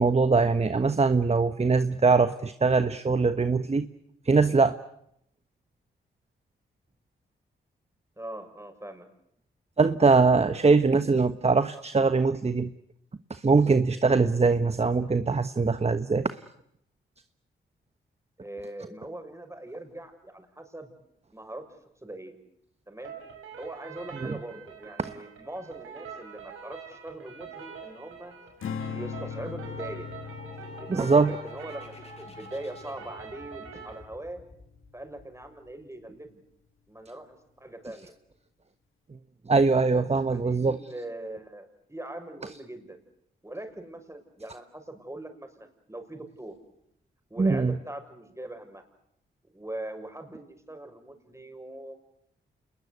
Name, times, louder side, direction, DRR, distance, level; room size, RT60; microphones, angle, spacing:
voice 1, 0.0-3.9 4.2-4.8 9.8-12.7 13.3-16.4 24.2-24.4 25.0-25.1 30.9-31.3 39.5-40.8 47.4-47.8, right 4 dB, 30° right, 11 dB, 1.2 m, -22 dB
voice 2, 8.2-9.1 18.4-20.9 21.3-21.7 22.0-22.3 22.9-23.1 23.6-28.4 28.9-30.1 30.8-34.4 34.9-36.4 36.9-38.1 39.9-43.0 43.4-46.5 47.3-48.8 49.5-52.0, right 1 dB, 15° right, 6 dB, 6.7 m, -41 dB
sound 1, 23.0-34.0, right 5 dB, 85° right, 5.9 m, -44 dB
Strum, 28.6-35.0, left 6 dB, 70° left, 1.9 m, -41 dB
sound 2, 29.0-36.5, left 2 dB, 30° left, 5.6 m, -52 dB
28.0 x 21.0 x 8.3 m, 0.75 s
supercardioid pair, 45°, 21 cm